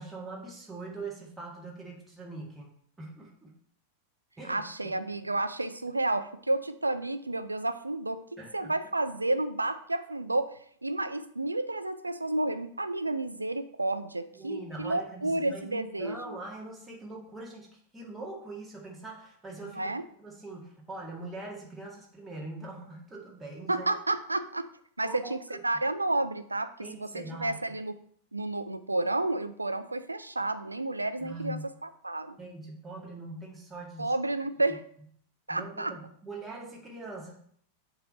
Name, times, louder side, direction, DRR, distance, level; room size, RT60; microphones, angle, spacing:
voice 1, 0.0-2.7 3.0-3.5 4.4-4.9 8.4-8.7 14.3-17.7 17.9-19.9 20.2-23.9 25.0-25.6 26.8-27.6 31.2-31.7 32.4-34.1 35.5-37.3, right 2 dB, 10° right, -2 dB, 1.6 m, -42 dB
voice 2, 4.5-16.4 19.6-20.0 23.7-24.7 25.0-27.9 28.3-32.4 34.0-34.8 35.5-35.9, right 2 dB, 80° right, 11 dB, 0.4 m, -31 dB
7.6 x 3.1 x 5.1 m, 0.63 s
figure-of-eight pair, 90°, 0 cm